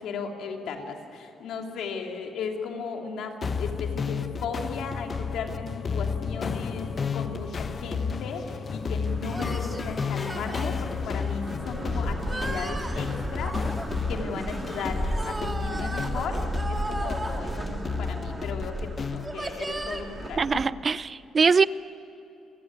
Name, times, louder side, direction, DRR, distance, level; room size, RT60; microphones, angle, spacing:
voice 1, 0.0-13.6 14.1-20.6, left 5 dB, 80° left, 2 dB, 2.9 m, -36 dB
sound 1, 3.4-19.3, left 6 dB, 40° left, 0.9 m, -32 dB
sound 2, 6.9-14.0, left 3 dB, 60° left, 5.8 m, -47 dB
sound 3, 9.1-20.7, right 2 dB, 20° right, 2.1 m, -34 dB
voice 2, 20.4-21.7, right 5 dB, 40° right, 18 dB, 0.5 m, -22 dB
28.5 x 18.0 x 9.5 m, 2.8 s
cardioid pair, 90°, 0 cm